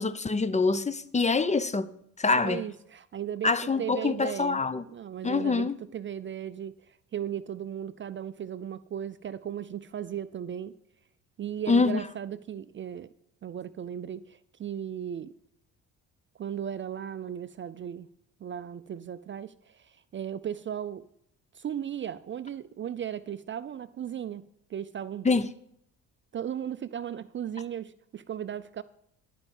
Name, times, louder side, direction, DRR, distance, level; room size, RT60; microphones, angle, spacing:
voice 1, 0.0-1.9 2.2-2.6 3.4-4.8 5.2-5.8 11.7-12.0 25.2-25.5, left 4 dB, 20° left, 0.6 m, -25 dB
voice 2, 2.4-4.6 4.9-10.7 11.4-13.1 13.4-15.3 16.4-18.1 18.4-21.1 21.5-24.4 24.7-25.3 26.3-28.8, right 9 dB, 35° right, 0.4 m, -36 dB
12.0 x 5.4 x 7.2 m
supercardioid pair, 70°, 36 cm